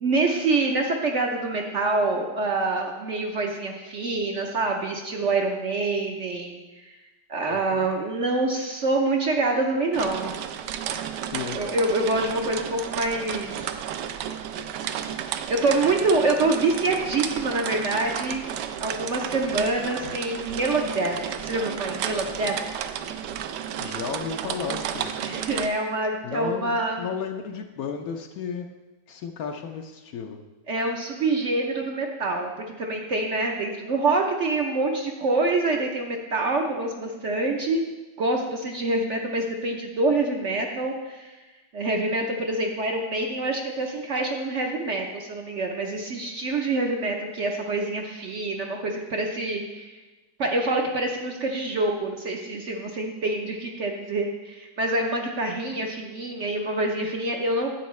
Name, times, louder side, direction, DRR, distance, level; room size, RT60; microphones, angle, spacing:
voice 1, 0.0-6.9 7.3-10.3 11.6-13.8 15.5-18.4 18.8-21.2 21.4-22.6 25.2-27.0 30.7-32.5 32.8-37.8 38.2-41.3 41.7-49.9 50.4-57.7, right 2 dB, 55° right, 1 dB, 0.9 m, -26 dB
voice 2, 7.5-7.9 11.3-11.6 23.8-25.2 26.2-28.7 29.1-30.4, left 6 dB, 65° left, 5 dB, 1.0 m, -33 dB
sound 1, 9.9-25.7, right 9 dB, 75° right, 1.1 m, -32 dB
10.5 x 8.0 x 3.1 m, 1.2 s
omnidirectional pair, 1.8 m